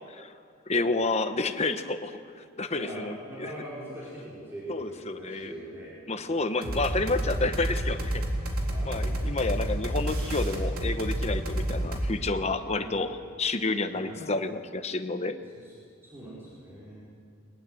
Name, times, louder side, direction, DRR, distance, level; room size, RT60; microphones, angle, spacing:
voice 1, 0.7-3.5 4.7-5.5 6.1-8.2 8.8-15.4, left 3 dB, 30° left, 9 dB, 1.0 m, -30 dB
voice 2, 2.7-6.6 8.7-9.2 12.7-12.9 13.9-14.2 15.5-15.7 16.0-17.0, equal, 10° right, -8 dB, 5.0 m, -42 dB
sound 1, 6.6-12.1, right 1 dB, 90° right, 3.8 m, -29 dB
21.5 x 20.5 x 7.8 m, 2.1 s
head